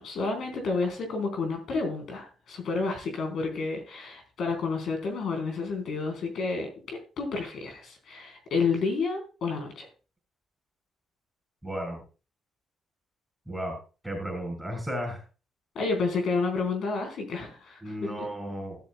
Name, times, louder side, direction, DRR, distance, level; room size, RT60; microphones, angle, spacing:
voice 1, 0.0-9.9 15.7-18.1, left 4 dB, 65° left, 3 dB, 4.3 m, -30 dB
voice 2, 11.6-12.0 13.5-13.8 14.0-15.2 17.8-18.9, equal, 5° right, 2 dB, 4.3 m, -34 dB
13.0 x 13.0 x 2.3 m, 0.34 s
cardioid pair, 90°, 0 cm